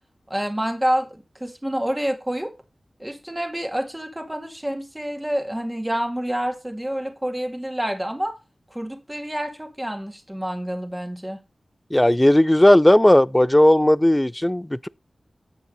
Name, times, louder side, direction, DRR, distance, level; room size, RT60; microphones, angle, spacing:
voice 1, 0.3-2.5 3.0-8.4 8.7-11.4, equal, 15° right, 1.9 m, -28 dB
voice 2, 11.9-14.9, left 1 dB, 15° left, 0.3 m, -16 dB
8.0 x 7.0 x 3.8 m
wide cardioid pair, 60°, 0 cm